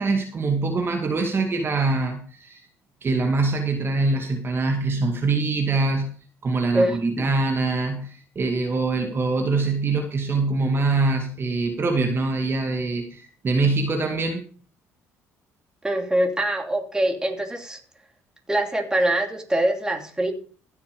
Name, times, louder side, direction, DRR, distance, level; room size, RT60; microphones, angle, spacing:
voice 1, 0.0-2.6 3.0-6.1 6.4-14.4, right 3 dB, 35° right, 4 dB, 2.3 m, -24 dB
voice 2, 6.7-7.3 15.8-17.8 18.5-20.3, right 1 dB, 10° right, 4 dB, 2.9 m, -24 dB
15.5 x 7.0 x 5.3 m, 0.41 s
supercardioid pair, 80°, 6 cm